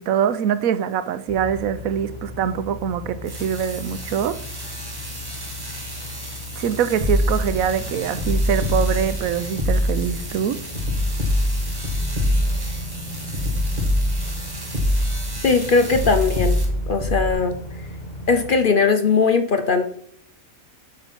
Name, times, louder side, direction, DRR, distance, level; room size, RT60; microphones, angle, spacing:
voice 1, 0.0-4.4 6.6-10.6, right 8 dB, 85° right, 12 dB, 1.1 m, -24 dB
sound 1, 1.3-18.5, equal, 35° left, 1.2 m, -36 dB
sound 2, 3.2-16.6, right 1 dB, 15° right, 1.8 m, -37 dB
sound 3, 7.0-7.6 8.2-9.2 9.6-10.2 10.8-12.8 13.3-14.4 14.7-15.4 15.9-17.3, left 1 dB, 30° right, 2.1 m, -23 dB
voice 2, 15.4-16.6 16.9-17.6 18.3-19.9, left 4 dB, 50° left, 8 dB, 0.7 m, -19 dB
7.0 x 5.3 x 5.9 m, 0.70 s
omnidirectional pair, 1.4 m